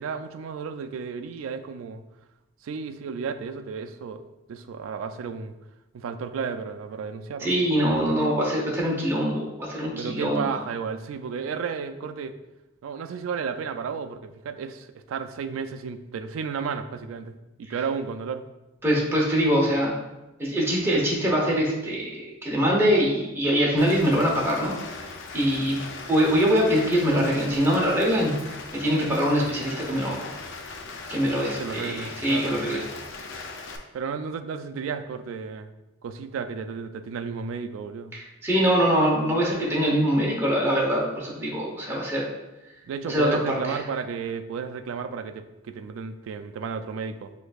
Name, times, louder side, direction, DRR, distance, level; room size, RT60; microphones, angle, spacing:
voice 1, 0.0-2.0 2.6-4.2 4.5-5.5 5.9-8.1 10.0-12.3 12.8-18.4 31.6-32.7 33.9-35.7 36.0-38.1 42.9-47.3, right 6 dB, 75° right, 9 dB, 0.3 m, -33 dB
voice 2, 7.4-10.4 18.8-19.9 20.4-24.7 25.3-25.8 26.1-28.3 28.7-30.3 31.1-32.8 38.1-42.3 43.1-43.7, equal, 10° right, -4 dB, 0.8 m, -23 dB
Rain, 23.8-33.8, left 3 dB, 65° left, 0.5 m, -39 dB
6.4 x 2.6 x 2.3 m, 1.0 s
head